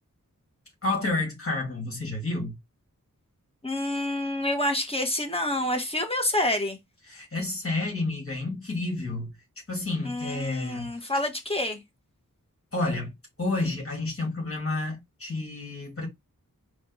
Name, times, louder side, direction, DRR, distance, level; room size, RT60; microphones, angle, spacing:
voice 1, 0.8-2.6 7.1-9.3 9.7-11.1 12.7-13.1 13.4-16.1, left 2 dB, 40° left, 2.6 m, -30 dB
voice 2, 3.6-6.8 10.0-11.8, left 1 dB, 15° left, 1.4 m, -28 dB
4.2 x 3.0 x 4.0 m
wide cardioid pair, 90°, 33 cm